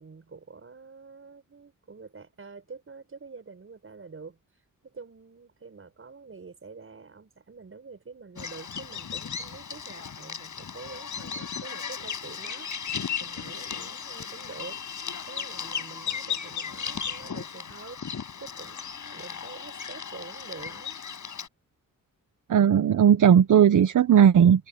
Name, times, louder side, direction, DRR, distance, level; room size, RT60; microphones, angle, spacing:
voice 1, 0.0-4.4 4.8-12.9 13.2-14.8 15.2-18.0 18.4-21.0, right 4 dB, 40° right, 6.7 m, -46 dB
Bird vocalization bird call bird song, 8.4-21.5, left 7 dB, 60° left, 5.5 m, -36 dB
voice 2, 22.5-24.7, right 8 dB, 65° right, 0.9 m, -17 dB
wide cardioid pair, 150°, 34 cm